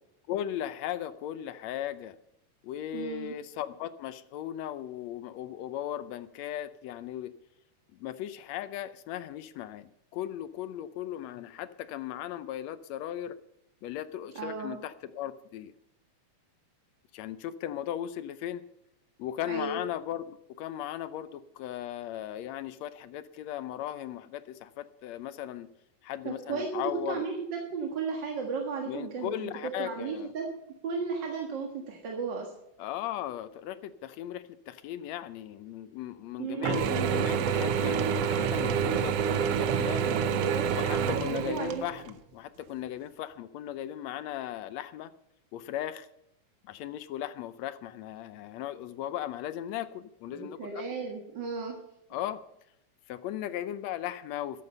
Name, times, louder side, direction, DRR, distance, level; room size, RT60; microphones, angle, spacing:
voice 1, 0.3-2.1 2.6-7.3 7.9-13.4 13.8-15.7 17.1-18.6 19.2-25.7 26.0-27.2 28.9-30.3 32.8-40.1 40.8-45.1 45.5-46.1 46.6-50.9 52.1-52.4 53.1-54.6, left 11 dB, 75° left, 14 dB, 1.7 m, -37 dB
voice 2, 2.9-3.3 14.4-14.8 19.5-19.8 26.3-29.5 29.8-30.5 30.8-32.5 36.4-36.8 40.1-40.6 41.3-41.8 50.3-51.8, right 5 dB, 45° right, 1 dB, 1.8 m, -34 dB
Mechanisms / Drill, 36.6-42.1, right 7 dB, 70° right, 1.5 m, -28 dB
14.0 x 11.0 x 5.4 m, 0.80 s
omnidirectional pair, 3.5 m